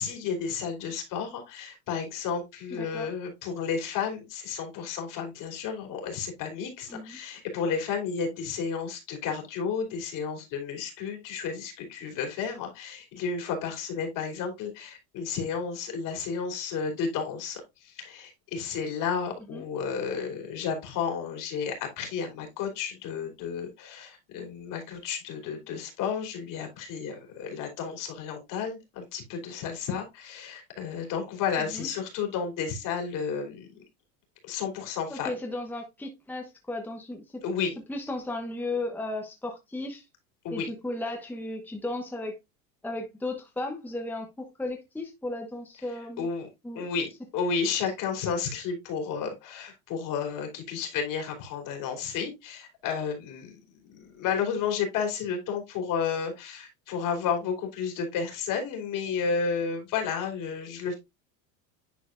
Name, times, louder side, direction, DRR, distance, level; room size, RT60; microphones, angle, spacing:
voice 1, 0.0-33.8 34.4-35.3 37.4-37.7 40.4-40.7 46.2-46.5 46.7-61.0, left 6 dB, 50° left, 3.3 m, -32 dB
voice 2, 2.7-3.1 6.9-7.2 19.5-19.6 31.6-31.9 35.1-37.4 37.9-40.1 40.5-42.3 42.8-46.3 46.6-46.9 47.8-47.9, left 2 dB, 5° left, 1.1 m, -35 dB
10.5 x 4.3 x 2.5 m
supercardioid pair, 115°, 40 cm